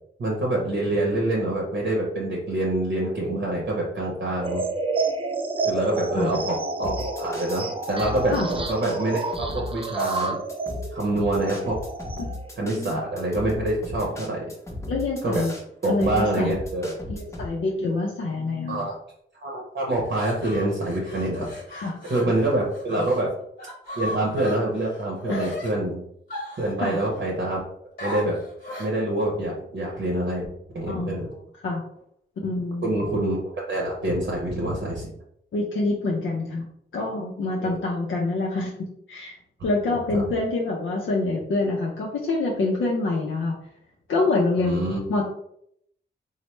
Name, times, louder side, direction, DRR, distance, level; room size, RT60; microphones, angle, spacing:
voice 1, 0.2-4.6 5.6-10.4 10.9-11.8 12.6-14.5 15.2-15.4 15.8-17.0 18.7-18.9 19.4-21.5 22.1-23.3 24.0-26.0 26.6-27.6 28.0-28.4 28.8-30.5 30.7-31.3 32.8-35.1 37.6-37.8 39.9-40.2 44.6-45.0, right 1 dB, 60° right, -2 dB, 0.7 m, -26 dB
sound 1, 4.4-12.5, right 3 dB, 25° right, 0.4 m, -30 dB
sound 2, 6.8-17.5, left 2 dB, 15° left, 0.8 m, -36 dB
voice 2, 12.2-12.9 14.9-15.5 15.9-16.5 17.1-18.9 21.7-22.0 25.3-25.5 26.8-27.0 30.9-31.3 31.6-31.8 32.4-32.9 35.5-36.6 36.9-39.4 39.6-43.5 44.1-44.8 45.1-45.2, left 3 dB, 70° left, -2 dB, 0.5 m, -26 dB
sound 3, 20.0-23.2 23.6-25.7 26.3-27.3 28.0-29.0, left 1 dB, 50° left, 1.2 m, -36 dB
3.1 x 2.0 x 3.1 m, 0.72 s
cardioid pair, 80°, 21 cm